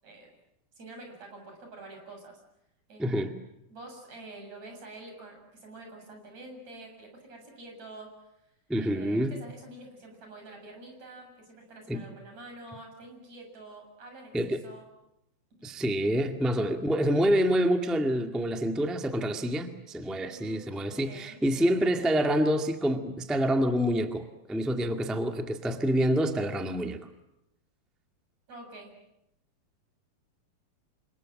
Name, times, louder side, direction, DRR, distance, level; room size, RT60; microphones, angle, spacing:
voice 1, 0.8-2.4 2.9-3.0 3.7-8.1 8.8-14.3 14.6-14.8 20.1-21.4 28.5-28.9, right 2 dB, 50° right, 3 dB, 8.5 m, -47 dB
voice 2, 3.0-3.3 8.7-9.4 11.9-12.0 14.3-14.6 15.6-27.0, equal, ahead, 5 dB, 0.6 m, -27 dB
29.0 x 26.0 x 7.7 m, 0.84 s
omnidirectional pair, 4.1 m